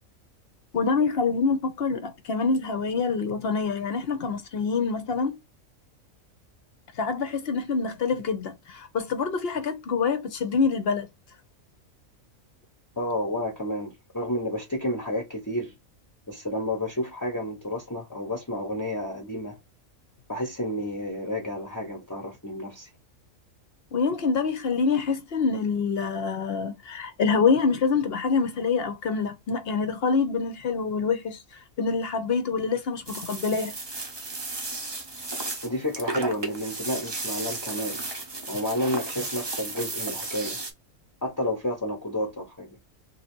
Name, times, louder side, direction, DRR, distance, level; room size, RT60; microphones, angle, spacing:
voice 1, 0.7-5.3 7.0-11.1 23.9-31.4 31.8-33.7, left 5 dB, 55° left, 0.8 m, -26 dB
voice 2, 13.0-15.7 16.3-19.6 20.3-22.9 35.6-38.1 38.5-40.6 41.2-42.8, left 1 dB, 20° left, 0.7 m, -30 dB
sound 1, 33.0-40.7, right 3 dB, 25° right, 0.6 m, -34 dB
3.2 x 2.7 x 4.3 m
omnidirectional pair, 1.4 m